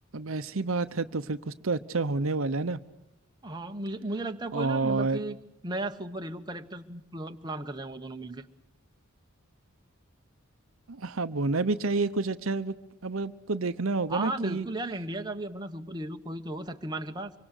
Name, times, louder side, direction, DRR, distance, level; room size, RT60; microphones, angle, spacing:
voice 1, 0.1-2.8 4.5-5.2 10.9-12.7 13.0-14.7, right 3 dB, 70° right, 11 dB, 0.8 m, -29 dB
voice 2, 3.4-5.4 5.6-8.5 14.1-17.3, right 2 dB, 20° right, 5 dB, 1.0 m, -35 dB
25.0 x 24.0 x 6.6 m, 0.90 s
head